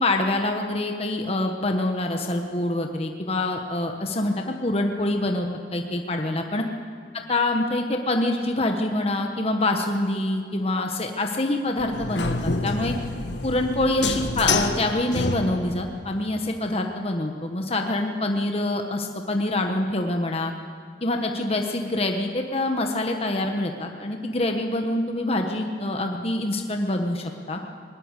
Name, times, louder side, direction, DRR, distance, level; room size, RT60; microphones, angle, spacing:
voice 1, 0.0-5.5 5.7-6.6 7.1-13.0 13.4-20.5 21.0-27.6, left 2 dB, 35° left, 3 dB, 1.2 m, -25 dB
sound 1, 11.8-15.9, left 3 dB, 80° left, 1.4 m, -28 dB
21.0 x 19.5 x 8.2 m, 2.1 s
head